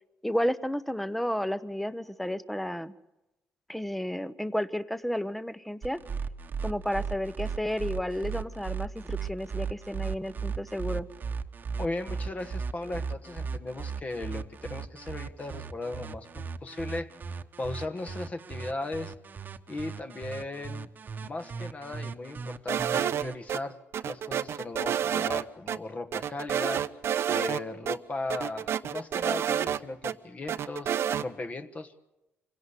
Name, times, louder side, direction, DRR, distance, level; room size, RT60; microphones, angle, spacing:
voice 1, 0.2-2.9 3.7-6.0 6.6-11.1, left 1 dB, 5° left, 15 dB, 0.8 m, -32 dB
sound 1, 5.8-23.3, right 6 dB, 40° right, 1.1 m, -36 dB
voice 2, 11.8-17.1 17.6-19.1 19.7-20.9 21.2-23.8 24.0-26.8 27.3-32.1, left 2 dB, 30° left, 9 dB, 1.4 m, -37 dB
sound 2, 22.7-23.6 23.9-25.4 25.7-25.8 26.1-27.6 27.9-28.0 28.3-30.1 30.5-31.2, right 9 dB, 65° right, 0.8 m, -29 dB
25.0 x 17.0 x 8.3 m, 0.95 s
cardioid pair, 110°, 5 cm